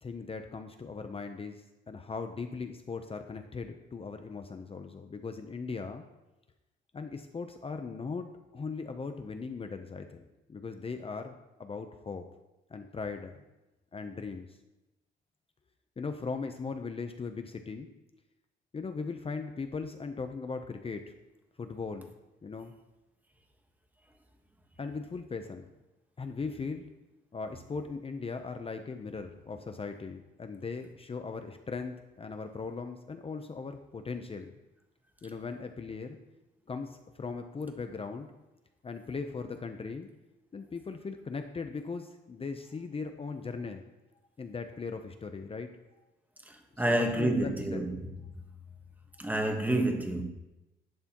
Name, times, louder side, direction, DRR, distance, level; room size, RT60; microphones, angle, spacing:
voice 1, 0.0-6.0 6.9-10.2 10.5-12.2 12.7-13.3 13.9-14.6 16.0-17.9 18.7-21.1 21.6-22.1 22.4-22.7 24.8-25.7 26.2-26.8 27.3-34.5 35.2-36.2 36.7-38.3 38.8-40.1 40.5-43.8 44.4-45.7 46.7-47.8, left 4 dB, 30° left, 0.7 m, -39 dB
voice 2, 46.4-48.0 48.4-48.5 49.2-50.2, right 1 dB, 10° right, 1.3 m, -29 dB
11.0 x 6.7 x 3.0 m
cardioid pair, 90°, 20 cm